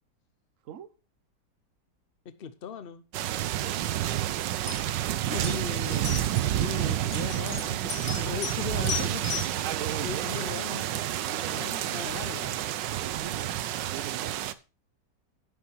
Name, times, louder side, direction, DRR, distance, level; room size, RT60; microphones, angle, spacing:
voice 1, 2.2-3.1 5.3-9.6 10.0-10.9 11.5-12.6, left 7 dB, 45° left, 0.7 m, -39 dB
sound 1, 3.1-14.5, right 12 dB, 90° right, 1.4 m, -29 dB
voice 2, 3.4-4.0 9.6-10.5 11.2-12.0 13.0-14.5, right 9 dB, 55° right, 1.1 m, -41 dB
sound 2, 4.4-4.5 4.7-5.1 5.4-5.5 5.9-6.5 7.1-8.6 8.9-9.5, left 8 dB, 75° left, 2.5 m, -35 dB
10.5 x 7.2 x 4.6 m
omnidirectional pair, 1.9 m